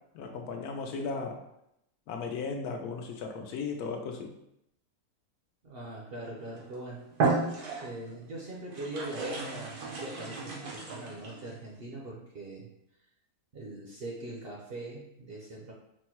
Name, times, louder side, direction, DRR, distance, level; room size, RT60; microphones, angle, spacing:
voice 1, 0.1-1.4 2.1-4.3, left 4 dB, 80° left, 3 dB, 1.1 m, -36 dB
voice 2, 5.6-7.0 7.8-12.7 13.5-15.7, right 2 dB, 55° right, -3 dB, 0.7 m, -42 dB
sound 1, 6.5-6.7 7.1-8.1 8.7-11.5, right 4 dB, 90° right, 1.5 m, -32 dB
4.3 x 2.1 x 4.4 m, 0.81 s
omnidirectional pair, 1.6 m